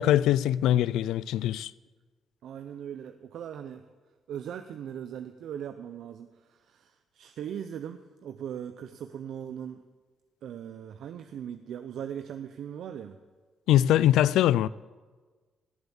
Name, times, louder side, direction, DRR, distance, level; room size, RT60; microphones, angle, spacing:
voice 1, 0.0-1.7 13.7-14.7, left 12 dB, 85° left, 0.3 m, -22 dB
voice 2, 2.4-3.8 4.3-9.8 10.4-13.1, right 9 dB, 75° right, 0.6 m, -39 dB
17.5 x 8.0 x 7.1 m
cardioid pair, 90°, 0 cm